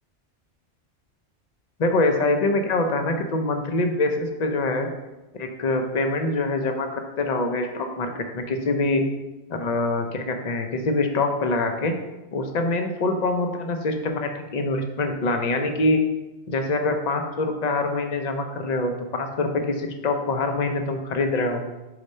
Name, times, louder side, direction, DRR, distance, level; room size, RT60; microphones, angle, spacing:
voice 1, 1.8-4.9 5.4-9.0 9.5-11.9 12.3-16.0 16.5-21.6, left 2 dB, 45° left, 5 dB, 0.7 m, -24 dB
4.9 x 4.3 x 5.4 m, 1.0 s
omnidirectional pair, 1.2 m